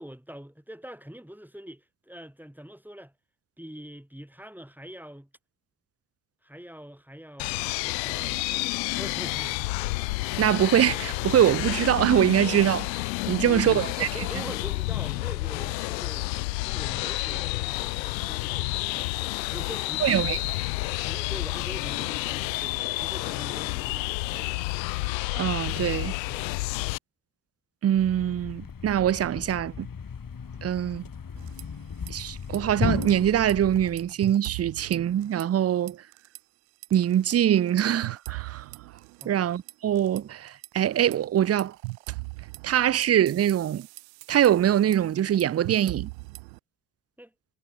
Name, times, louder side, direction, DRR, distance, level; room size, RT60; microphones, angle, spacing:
voice 1, 0.0-3.1 3.6-5.3 6.4-9.7 13.4-19.1 19.5-20.4 21.1-24.6 26.3-26.5 39.2-39.4 47.2-47.3, equal, 5° right, 7.9 m, -44 dB
sound 1, 7.4-27.0, left 23 dB, 85° left, 0.7 m, -30 dB
voice 2, 10.4-12.9 13.3-14.1 20.0-20.4 25.3-26.1 27.8-29.9 30.6-31.0 32.1-36.0 36.9-38.6 39.2-41.7 42.6-43.9 44.3-46.1, right 10 dB, 30° right, 0.6 m, -23 dB
Thump thud, 27.9-34.1, left 6 dB, 40° left, 5.1 m, -35 dB
sound 2, 31.4-32.1 32.4-32.6 33.0-35.6 35.9-36.4 36.8-40.2 40.6-46.6, right 30 dB, 80° right, 5.0 m, -40 dB
hypercardioid pair, 45°, 49 cm